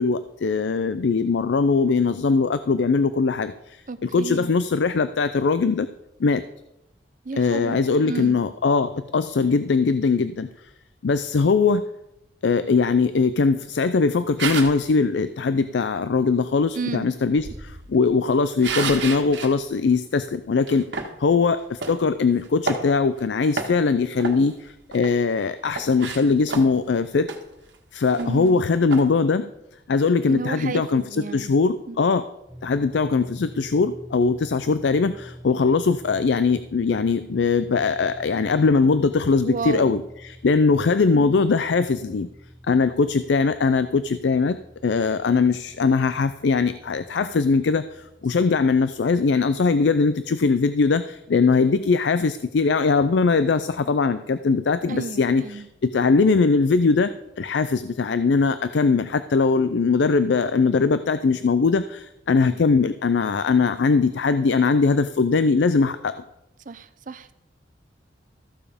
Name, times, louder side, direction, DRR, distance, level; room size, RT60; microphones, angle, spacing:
voice 1, 0.0-5.9 6.2-6.4 7.4-10.5 11.0-11.8 12.4-20.9 21.2-27.3 27.9-29.5 29.9-32.2 32.6-42.3 42.6-44.6 44.8-57.1 57.4-66.1, left 4 dB, 75° left, 13 dB, 0.4 m, -21 dB
voice 2, 3.9-4.5 7.2-8.4 16.7-17.1 28.2-28.7 30.3-31.5 31.9-32.2 39.4-40.0 41.1-41.5 54.9-55.7 62.5-62.6 66.7-67.3, right 4 dB, 45° right, 13 dB, 0.6 m, -32 dB
sound 1, 14.4-14.8 17.3-19.5 19.9-20.1 20.7-21.1 21.8-22.0 22.4-23.2 23.5-23.9 24.2-25.2 25.6-26.9 27.3-27.4 27.7-27.8 28.1-28.5 28.9-29.1, right 4 dB, 85° right, 1.5 m, -31 dB
sound 2, 32.5-50.1, equal, 30° right, 3.1 m, -46 dB
14.0 x 7.0 x 5.0 m, 0.88 s
head